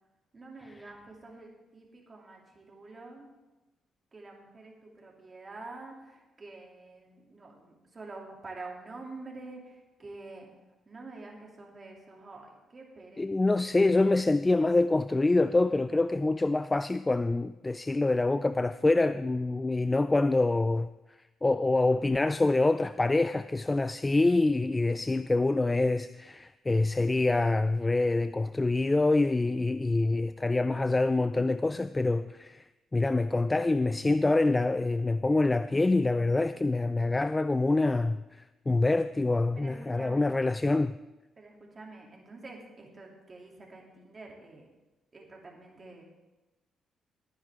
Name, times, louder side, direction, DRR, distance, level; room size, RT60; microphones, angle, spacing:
voice 1, 0.3-3.3 4.1-10.5 10.8-13.3 39.5-40.3 41.4-44.6 45.1-46.0, right 3 dB, 35° right, 0 dB, 3.2 m, -47 dB
voice 2, 13.2-20.9 21.4-32.6 32.9-38.2 38.7-40.9, left 2 dB, 20° left, 13 dB, 0.3 m, -26 dB
18.5 x 9.5 x 3.8 m, 1.1 s
cardioid pair, 90°, 0 cm